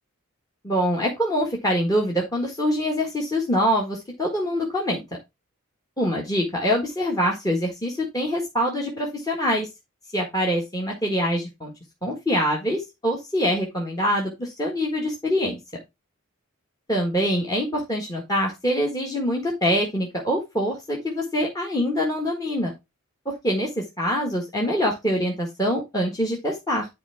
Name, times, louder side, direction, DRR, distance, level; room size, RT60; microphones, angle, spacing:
voice 1, 0.6-5.0 6.0-9.7 10.1-11.7 12.0-15.6 16.9-22.7 23.4-26.9, equal, 15° left, 0 dB, 1.6 m, -24 dB
10.5 x 4.6 x 3.5 m, 0.22 s
head